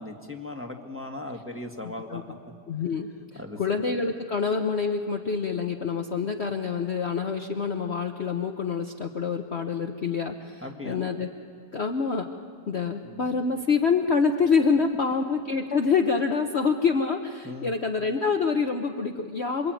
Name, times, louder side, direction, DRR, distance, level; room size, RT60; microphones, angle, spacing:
voice 1, 0.0-2.6 3.3-3.6 10.6-11.1 13.0-13.2 17.4-17.7, left 2 dB, 5° right, 2 dB, 1.7 m, -38 dB
voice 2, 2.7-11.3 11.7-12.3 12.7-19.7, left 5 dB, 45° left, 4 dB, 1.1 m, -26 dB
27.0 x 23.5 x 9.2 m, 2.1 s
omnidirectional pair, 1.8 m